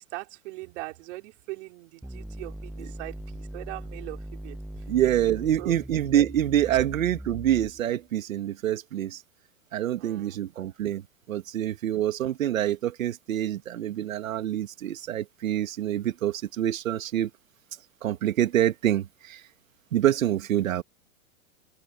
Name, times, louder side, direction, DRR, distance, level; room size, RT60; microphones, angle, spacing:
voice 1, 0.0-4.6 5.6-5.7 6.7-6.8 10.0-10.5, right 21 dB, 60° right, 4.1 m, -40 dB
sound 1, 2.0-8.0, right 1 dB, ahead, 0.5 m, -40 dB
voice 2, 4.9-9.2 9.7-17.3 18.0-19.4 19.9-20.8, right 11 dB, 80° right, 1.9 m, -26 dB
hypercardioid pair, 115°, 40 cm